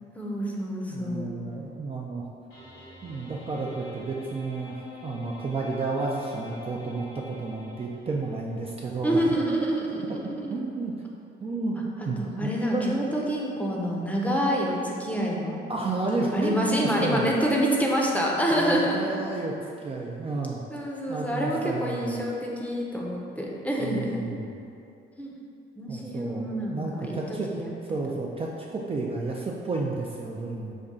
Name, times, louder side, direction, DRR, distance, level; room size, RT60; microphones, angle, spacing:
voice 1, 0.1-1.3 9.0-10.5 12.2-15.6 16.3-19.2 20.7-24.4 25.2-25.3 25.8-27.7, equal, 5° left, -3 dB, 0.6 m, -27 dB
voice 2, 0.9-2.3 3.0-4.7 5.0-9.6 10.5-10.9 11.4-13.1 15.7-17.3 18.5-20.6 21.1-22.2 23.8-24.5 25.9-27.5 27.9-30.7, right 3 dB, 30° right, -3 dB, 0.4 m, -31 dB
sound 1, 2.5-8.3, left 1 dB, 80° left, 1.3 m, -47 dB
5.3 x 2.3 x 3.6 m, 2.6 s
cardioid pair, 90°, 20 cm